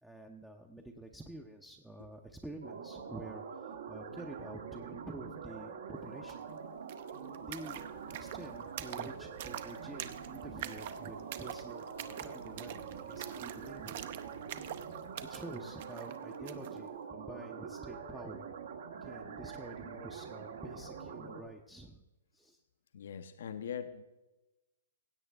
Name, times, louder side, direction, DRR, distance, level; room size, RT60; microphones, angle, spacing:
voice 1, 0.0-6.5 7.4-14.2 15.3-18.5 19.0-22.0 22.3-22.6, right 1 dB, 5° right, 3 dB, 0.6 m, -48 dB
sound 1, 2.6-21.4, right 6 dB, 70° right, 1.4 m, -45 dB
sound 2, 6.3-6.4 6.6-16.8, right 10 dB, 50° right, 0.7 m, -46 dB
voice 2, 22.9-24.0, left 8 dB, 70° left, 9 dB, 0.7 m, -41 dB
16.5 x 8.0 x 3.4 m, 1.0 s
hypercardioid pair, 145°, 0 cm